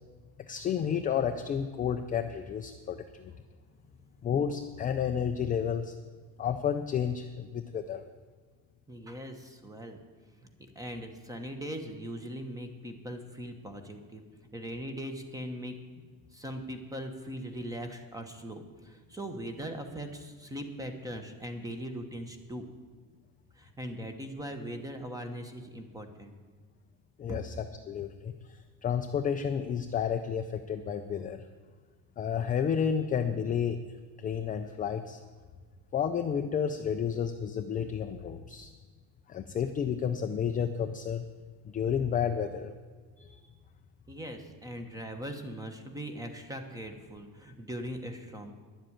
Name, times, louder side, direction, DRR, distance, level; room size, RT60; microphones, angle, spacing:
voice 1, 0.5-3.3 4.2-5.9 6.4-8.0 27.2-28.3 28.8-31.4 32.2-33.8 34.2-35.2 35.9-38.7 39.3-41.3 41.7-42.7 43.2-43.4, left 8 dB, 20° left, 6 dB, 0.3 m, -31 dB
voice 2, 8.9-10.0 10.4-10.5 10.7-14.2 14.5-15.8 16.3-22.7 23.6-26.3 27.3-27.4 44.1-48.5, equal, 10° right, 7 dB, 1.1 m, -40 dB
11.0 x 7.7 x 8.7 m, 1.5 s
cardioid pair, 155°, 41 cm